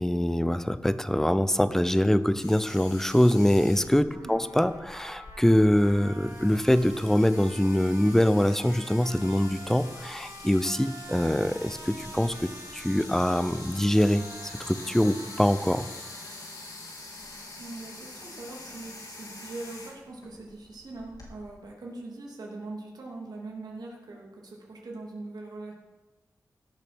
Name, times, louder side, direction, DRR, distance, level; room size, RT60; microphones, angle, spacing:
voice 1, 0.0-15.9, left 1 dB, 5° left, 13 dB, 0.6 m, -24 dB
sound 1, 2.4-21.3, left 2 dB, 75° left, 3.7 m, -45 dB
Trumpet, 4.1-16.6, right 2 dB, 55° right, 4.4 m, -47 dB
voice 2, 17.6-25.7, right 2 dB, 85° right, -2 dB, 3.0 m, -41 dB
16.5 x 6.6 x 6.2 m, 1.2 s
wide cardioid pair, 105°, 7 cm